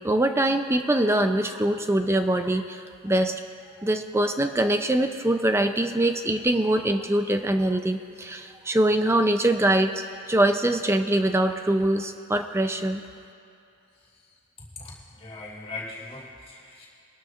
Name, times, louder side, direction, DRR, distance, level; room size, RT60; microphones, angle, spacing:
voice 1, 0.0-3.3 3.8-9.9 10.3-13.0, right 1 dB, 10° right, 7 dB, 0.5 m, -23 dB
voice 2, 14.7-16.9, left 3 dB, 30° left, -6 dB, 3.4 m, -40 dB
23.5 x 12.5 x 2.5 m, 2.6 s
head